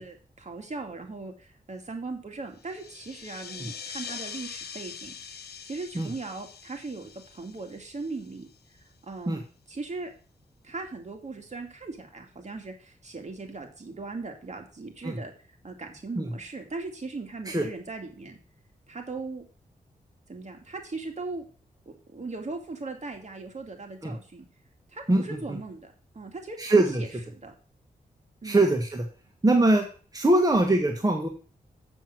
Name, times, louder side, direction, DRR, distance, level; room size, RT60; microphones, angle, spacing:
voice 1, 0.0-5.1 5.6-8.5 9.0-9.4 9.7-10.1 10.6-15.3 15.6-18.4 18.9-19.4 20.3-21.4 21.9-24.4 24.9-27.5 28.4-28.6, right 3 dB, 45° right, 3 dB, 2.5 m, -38 dB
sound 1, 2.6-8.7, left 7 dB, 90° left, 1.1 m, -43 dB
voice 2, 26.6-27.0 28.4-29.1 29.4-29.9 30.1-31.3, right 2 dB, 25° right, 3 dB, 1.6 m, -22 dB
7.6 x 7.0 x 6.2 m, 0.38 s
cardioid pair, 60°, 16 cm